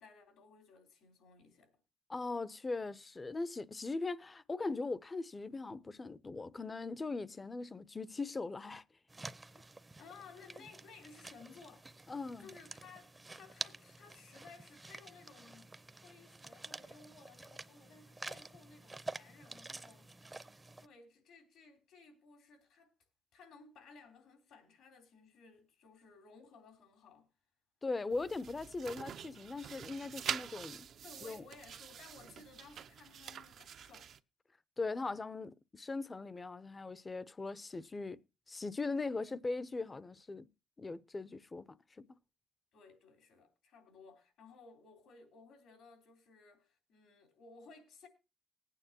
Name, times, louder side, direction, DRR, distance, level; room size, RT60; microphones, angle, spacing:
voice 1, 0.0-1.8 10.0-15.7 16.0-20.5 20.8-22.9 23.3-27.3 31.0-34.1 42.7-48.1, left 4 dB, 80° left, 3.3 m, -58 dB
voice 2, 2.1-8.8 12.1-12.5 27.8-30.9 31.2-31.4 34.8-38.2 38.5-40.5 40.8-41.8, left 3 dB, 25° left, 0.6 m, -40 dB
sound 1, 9.1-20.9, right 2 dB, 20° right, 0.6 m, -49 dB
sound 2, 28.1-34.2, right 8 dB, 65° right, 0.6 m, -45 dB
19.5 x 9.1 x 2.8 m
cardioid pair, 90°, 0 cm